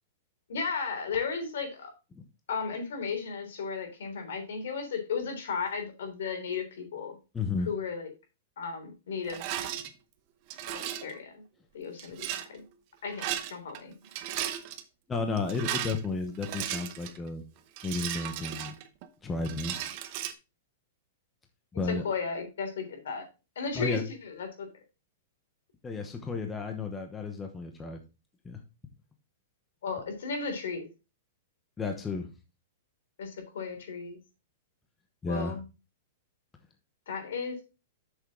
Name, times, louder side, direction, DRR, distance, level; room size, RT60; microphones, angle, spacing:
voice 1, 0.5-1.9 2.5-7.2 7.7-8.1 8.6-9.4 10.7-11.4 11.7-12.6 13.0-13.9 21.7-23.3 23.6-24.0 24.3-24.7 29.8-30.9 33.2-34.2 35.3-35.6 37.1-37.6, left 5 dB, 80° left, 5 dB, 3.5 m, -34 dB
voice 2, 7.3-7.7 15.1-17.4 17.8-18.7 19.2-19.8 21.7-22.0 23.7-24.0 25.8-28.0 28.4-28.6 31.8-32.3 35.2-35.6, left 4 dB, 10° left, 4 dB, 1.0 m, -32 dB
Rattle, 9.3-9.9 10.5-11.1 12.0-12.5 13.1-13.8 14.1-14.8 15.4-17.2 17.8-19.1 19.4-20.3, right 12 dB, 35° right, 0.8 m, -35 dB
8.0 x 6.4 x 3.6 m, 0.29 s
supercardioid pair, 165°, 0 cm